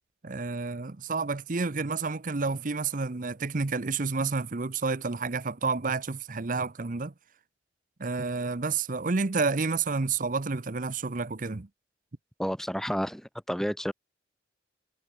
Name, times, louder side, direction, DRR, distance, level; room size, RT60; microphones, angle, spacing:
voice 1, 0.2-7.1 8.0-11.7, right 4 dB, 45° right, 0.8 m, -30 dB
voice 2, 12.4-13.9, equal, ahead, 1.0 m, -30 dB
head